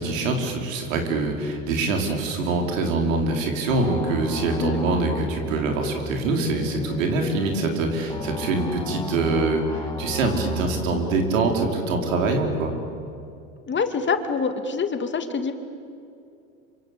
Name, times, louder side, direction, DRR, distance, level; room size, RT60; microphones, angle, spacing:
voice 1, 0.0-12.7, right 3 dB, 80° right, 3 dB, 5.0 m, -24 dB
sound 1, 3.7-12.7, left 1 dB, 10° left, 2.8 m, -33 dB
voice 2, 13.7-15.5, left 5 dB, 30° left, 7 dB, 2.5 m, -25 dB
27.0 x 25.0 x 8.6 m, 2.5 s
hypercardioid pair, 90°, 39 cm